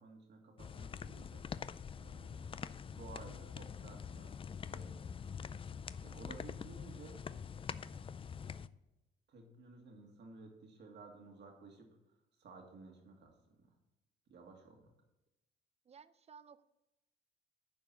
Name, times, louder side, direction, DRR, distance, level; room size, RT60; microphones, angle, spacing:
voice 1, 0.0-1.4 2.0-2.6 2.8-5.2 6.0-7.2 8.2-8.3 9.3-11.9 12.4-13.7 14.3-14.9, right 3 dB, 60° right, 2 dB, 2.0 m, -55 dB
sound 1, 0.6-8.7, left 6 dB, 25° left, 0.3 m, -45 dB
voice 2, 15.8-16.6, right 6 dB, 35° right, 15 dB, 0.5 m, -57 dB
10.5 x 4.6 x 5.9 m, 0.94 s
cardioid pair, 90°, 20 cm